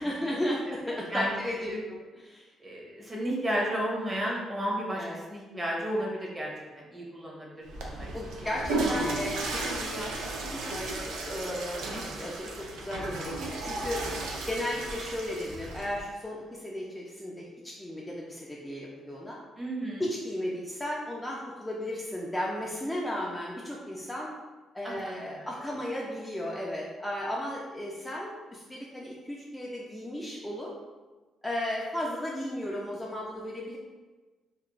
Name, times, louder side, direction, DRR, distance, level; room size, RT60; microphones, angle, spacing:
voice 1, 0.0-1.7 2.3-2.5 4.9-5.2 8.1-12.5 12.8-14.0 14.5-19.4 20.0-24.3 24.7-30.7 31.4-33.8, left 1 dB, 10° left, -4 dB, 0.4 m, -35 dB
voice 2, 2.6-6.5 6.8-8.1 8.4-8.5 19.6-20.0 24.8-25.5, equal, 20° right, -4 dB, 0.8 m, -33 dB
Water / Toilet flush, 7.6-16.0, right 2 dB, 90° right, 0.4 m, -34 dB
2.4 x 2.1 x 2.9 m, 1.3 s
cardioid pair, 90°, 0 cm